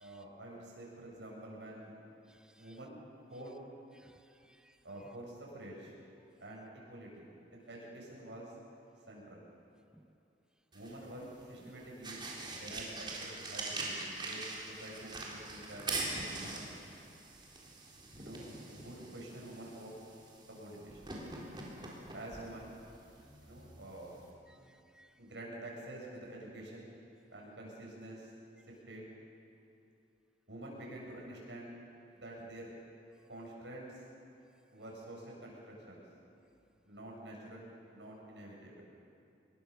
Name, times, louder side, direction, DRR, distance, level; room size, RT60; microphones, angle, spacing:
voice 1, 0.0-1.9 2.6-3.0 3.3-3.5 4.8-5.9 6.4-8.5 9.1-9.5 10.7-12.2 12.6-16.7 18.2-19.9 20.5-21.0 22.1-22.8 23.4-24.1 24.6-24.7 25.2-26.9 27.3-28.3 28.7-29.1 30.5-31.8 32.1-32.7 33.3-34.0 34.7-36.0 36.9-38.9, right 1 dB, 90° right, -2 dB, 7.4 m, -48 dB
voice 2, 2.3-2.8 4.0-4.8 9.9-10.1 12.7-12.8 24.4-25.2, right 1 dB, 5° right, 8 dB, 0.7 m, -63 dB
sound 1, 10.7-24.3, right 3 dB, 25° right, 4.0 m, -44 dB
25.0 x 22.0 x 6.8 m, 2.8 s
head